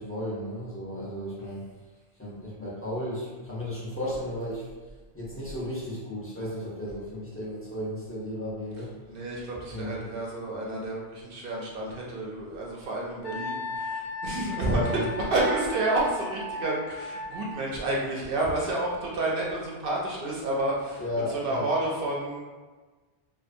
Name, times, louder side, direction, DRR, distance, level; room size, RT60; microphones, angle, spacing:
voice 1, 0.0-1.7 2.2-4.7 5.1-8.9 9.6-10.0 14.6-15.1 21.0-21.7, left 1 dB, 20° left, -9 dB, 0.4 m, -34 dB
voice 2, 9.1-15.0 15.3-21.0 21.3-22.4, right 2 dB, 60° right, -3 dB, 0.6 m, -30 dB
Wind instrument woodwind instrument, 13.2-17.5, left 1 dB, 50° left, 0.7 m, -36 dB
2.5 x 2.2 x 2.5 m, 1.3 s
omnidirectional pair, 1.2 m